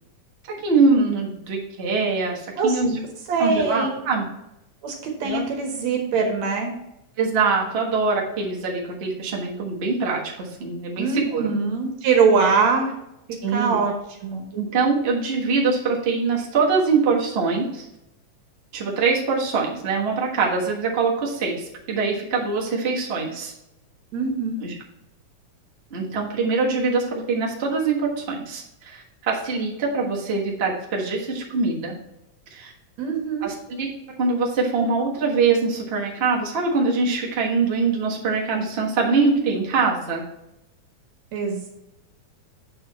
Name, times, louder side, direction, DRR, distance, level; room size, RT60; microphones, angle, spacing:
voice 1, 0.5-3.0 3.4-4.2 5.2-5.5 7.2-11.5 13.4-13.8 14.5-17.9 18.7-23.5 24.6-24.7 25.9-31.9 32.5-32.7 33.4-33.9 34.2-40.2, right 4 dB, 50° right, -2 dB, 0.7 m, -23 dB
voice 2, 3.3-4.0 4.8-6.7 11.0-13.0 13.3-13.9 14.2-14.5 24.1-24.7 33.0-33.5 41.3-41.7, right 5 dB, 70° right, 3 dB, 2.1 m, -22 dB
7.6 x 4.7 x 4.1 m, 0.88 s
omnidirectional pair, 3.5 m